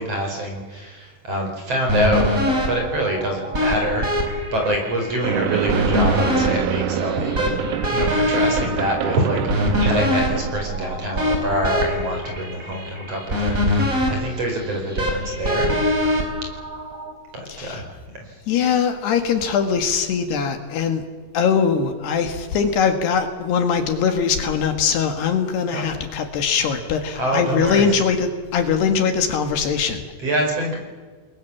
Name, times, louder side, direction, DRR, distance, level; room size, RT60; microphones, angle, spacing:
voice 1, 0.0-2.3 2.7-15.7 17.3-18.4 25.7-26.0 27.2-28.0 30.2-30.8, right 1 dB, 35° right, 2 dB, 5.8 m, -25 dB
sound 1, 1.9-17.1, left 1 dB, 20° right, 4.4 m, -24 dB
sound 2, 5.2-11.2, right 11 dB, 80° right, 1.8 m, -27 dB
voice 2, 17.5-17.8 18.5-21.0 21.3-30.0, left 6 dB, 70° left, 6 dB, 3.7 m, -21 dB
30.0 x 21.5 x 7.2 m, 1.5 s
omnidirectional pair, 5.1 m